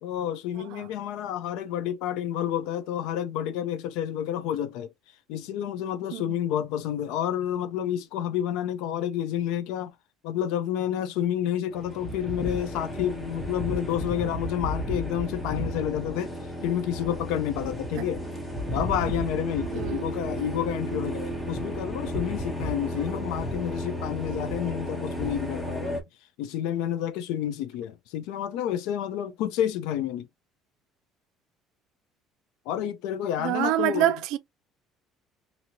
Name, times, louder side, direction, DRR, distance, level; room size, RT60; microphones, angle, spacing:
voice 1, 0.0-4.9 5.3-9.9 10.2-16.3 16.6-18.2 18.7-25.9 26.4-30.3 32.7-34.1, left 10 dB, 85° left, 0.5 m, -29 dB
sound 1, 11.7-26.0, equal, 10° left, 0.8 m, -33 dB
voice 2, 19.7-20.1 33.4-34.4, right 14 dB, 70° right, 0.4 m, -27 dB
2.9 x 2.7 x 2.7 m
cardioid pair, 155°, 0 cm